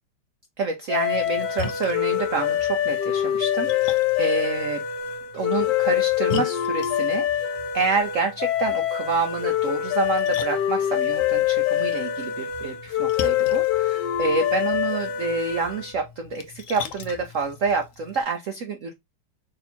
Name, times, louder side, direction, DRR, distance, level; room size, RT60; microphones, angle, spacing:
voice 1, 0.6-4.8 5.3-7.5 7.7-18.9, right 4 dB, 75° right, 0.7 m, -28 dB
sound 1, 0.9-16.0, left 11 dB, 65° left, 1.3 m, -25 dB
Splash splatter, 1.1-18.2, left 6 dB, 85° left, 0.7 m, -41 dB
3.4 x 2.7 x 4.3 m
omnidirectional pair, 2.1 m